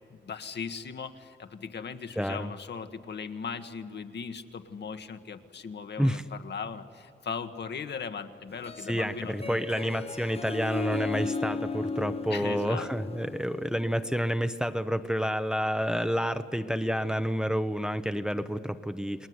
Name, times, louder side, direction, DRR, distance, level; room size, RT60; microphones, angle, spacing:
voice 1, 0.1-9.6 12.3-12.9, left 6 dB, 60° left, 8 dB, 1.5 m, -38 dB
voice 2, 2.2-2.5 6.0-6.2 8.9-19.3, equal, 5° right, 9 dB, 0.9 m, -29 dB
Harp, 8.5-14.0, left 4 dB, 30° left, 0.9 m, -35 dB
30.0 x 20.0 x 9.6 m, 2.5 s
wide cardioid pair, 115°, 20 cm